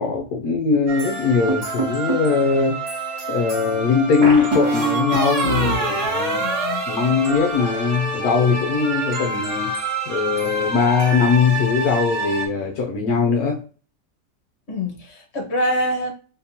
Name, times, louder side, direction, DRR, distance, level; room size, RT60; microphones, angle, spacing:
voice 1, 0.0-2.8 3.3-6.5 6.9-9.8 10.1-13.6, left 5 dB, 65° left, 1.0 m, -20 dB
sound 1, 0.9-12.5, right 2 dB, 85° right, 2.2 m, -28 dB
sound 2, 1.5-2.3 4.2-7.8, right 2 dB, 70° right, 2.1 m, -24 dB
voice 2, 6.3-6.8 14.7-16.1, equal, 35° left, 1.6 m, -25 dB
4.2 x 3.7 x 2.8 m
omnidirectional pair, 2.0 m